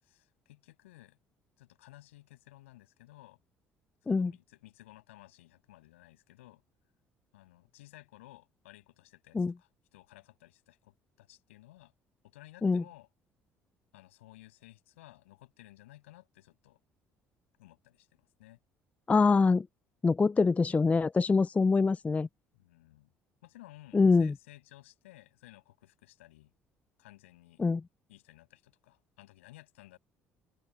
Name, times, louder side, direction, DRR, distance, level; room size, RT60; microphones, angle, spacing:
voice 1, 0.0-1.2 1.6-3.4 4.0-6.6 7.3-11.9 12.2-13.1 13.9-16.8 17.6-18.6 22.5-23.1 23.4-26.5 27.0-27.6 28.1-30.0, left 17 dB, 85° left, 8.0 m, -56 dB
voice 2, 19.1-19.7 20.0-22.3 23.9-24.3 27.6-27.8, left 4 dB, 20° left, 0.3 m, -24 dB
open air
hypercardioid pair, 55°, 7 cm